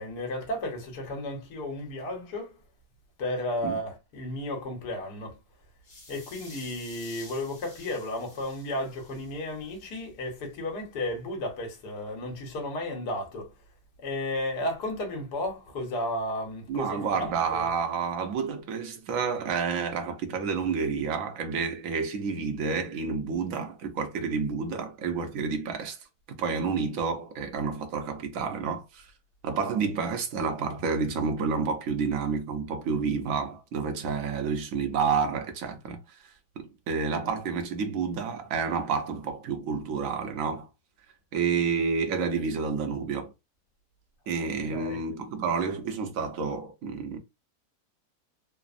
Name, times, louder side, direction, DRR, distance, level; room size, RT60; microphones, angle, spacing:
voice 1, 0.0-2.6 3.2-5.4 6.1-13.5 14.0-17.7 44.7-45.0, left 1 dB, 70° left, 1.5 m, -33 dB
sound 1, 5.8-9.9, left 2 dB, 45° left, 1.3 m, -50 dB
voice 2, 16.7-26.0 26.3-29.1 29.4-36.0 36.6-40.7 41.3-43.3 44.3-47.2, right 5 dB, 65° right, 0.9 m, -29 dB
3.2 x 2.0 x 2.4 m
omnidirectional pair, 1.8 m